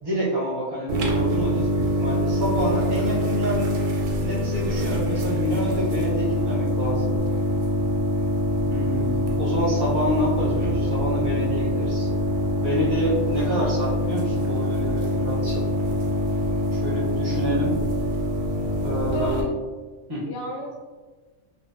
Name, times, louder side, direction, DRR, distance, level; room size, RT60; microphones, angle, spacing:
voice 1, 0.0-3.7 4.2-7.1 8.6-12.1 12.6-15.7 16.7-17.8 18.8-19.5 20.1-20.3, equal, 25° right, -7 dB, 0.6 m, -28 dB
sound 1, 0.9-19.4, equal, 85° right, 1.0 m, -24 dB
voice 2, 18.9-19.4 20.2-20.8, left 1 dB, 65° left, 0 dB, 0.7 m, -33 dB
2.4 x 2.2 x 2.4 m, 1.3 s
omnidirectional pair, 1.3 m